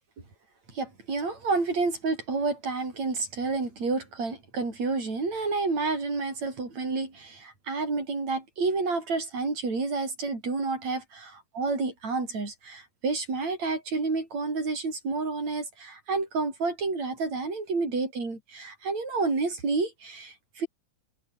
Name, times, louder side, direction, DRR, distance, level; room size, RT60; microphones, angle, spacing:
voice 1, 0.7-20.7, right 3 dB, 65° right, 8.1 m, -30 dB
omnidirectional pair, 3.3 m